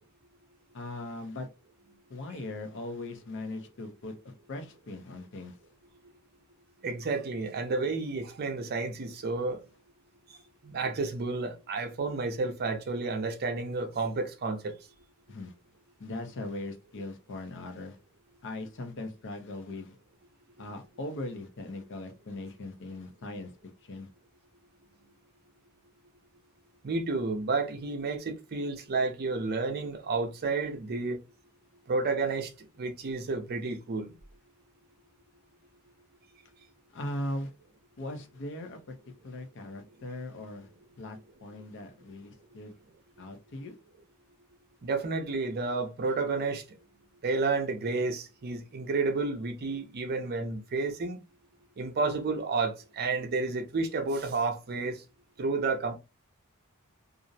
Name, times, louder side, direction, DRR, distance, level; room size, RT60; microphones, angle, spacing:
voice 1, 0.7-1.5 2.1-5.6 15.3-15.5 16.0-18.0 18.4-19.9 20.6-23.5 23.8-24.1 36.9-37.5 38.0-39.0 39.2-40.7 41.0-42.7 43.2-43.8, left 2 dB, 55° left, 0.6 m, -39 dB
voice 2, 6.8-9.6 10.6-14.7 26.8-31.2 31.9-32.5 32.8-34.1 44.8-46.6 47.2-51.2 51.8-55.0 55.4-55.9, right 3 dB, 45° right, 0.5 m, -31 dB
2.5 x 2.0 x 2.6 m
head